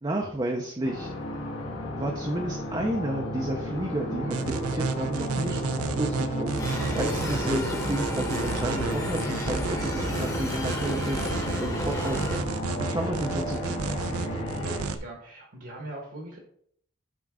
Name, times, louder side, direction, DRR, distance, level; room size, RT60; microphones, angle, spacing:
voice 1, 0.0-1.1 1.9-11.2 11.6-14.1, right 1 dB, 20° right, 1 dB, 0.6 m, -31 dB
sound 1, 0.8-14.8, left 1 dB, 70° left, 1.5 m, -34 dB
sound 2, 4.3-15.0, right 4 dB, 85° right, 0.5 m, -32 dB
sound 3, 6.6-12.4, left 1 dB, 15° left, 1.0 m, -33 dB
voice 2, 14.6-16.4, right 2 dB, 55° right, 0 dB, 1.2 m, -40 dB
8.6 x 3.7 x 3.7 m, 0.64 s
head